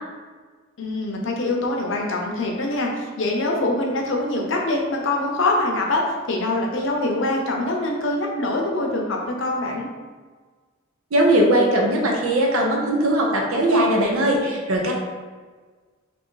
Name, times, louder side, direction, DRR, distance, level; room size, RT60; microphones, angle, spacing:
voice 1, 0.8-6.0 6.3-9.9, left 2 dB, 65° left, 0 dB, 0.6 m, -24 dB
voice 2, 11.1-14.9, right 1 dB, 85° right, 0 dB, 0.6 m, -19 dB
3.0 x 2.5 x 3.7 m, 1.4 s
head